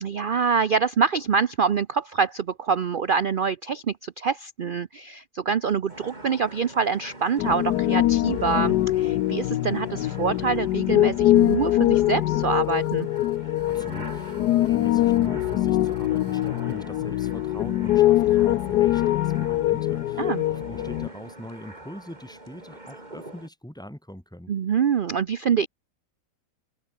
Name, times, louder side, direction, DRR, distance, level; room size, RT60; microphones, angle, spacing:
voice 1, 0.0-13.1 20.2-20.4 24.5-25.7, right 6 dB, 85° right, 0.4 m, -25 dB
sound 1, 5.9-23.5, right 1 dB, 25° right, 4.3 m, -44 dB
Piano, 7.4-21.1, left 14 dB, 80° left, 1.2 m, -23 dB
Telephone, 11.3-16.8, left 1 dB, 45° left, 7.8 m, -59 dB
voice 2, 13.7-24.5, equal, ahead, 2.6 m, -42 dB
omnidirectional pair, 1.8 m